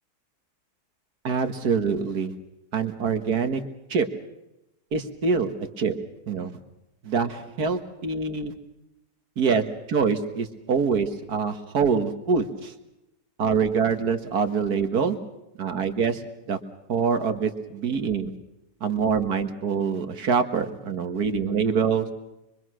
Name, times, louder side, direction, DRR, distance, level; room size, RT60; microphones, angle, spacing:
voice 1, 1.2-2.3 2.7-3.6 3.9-4.1 4.9-5.9 6.3-6.5 7.0-8.5 9.4-9.6 9.9-12.7 13.4-15.1 15.6-16.2 16.5-16.6 16.9-18.3 18.8-22.1, right 5 dB, 75° right, 7 dB, 2.1 m, -25 dB
24.5 x 23.5 x 6.3 m, 0.92 s
omnidirectional pair, 1.7 m